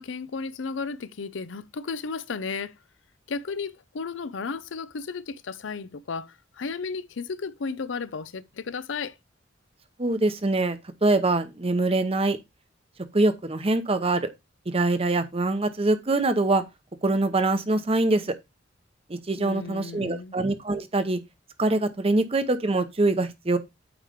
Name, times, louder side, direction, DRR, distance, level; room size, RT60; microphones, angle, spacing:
voice 1, 0.0-2.7 3.3-9.1 19.4-20.4, left 4 dB, 85° left, 0.6 m, -34 dB
voice 2, 10.0-12.4 13.1-14.3 14.7-16.6 17.0-18.3 19.1-21.2 21.6-23.6, right 2 dB, 30° right, 0.8 m, -24 dB
8.9 x 3.2 x 5.0 m
head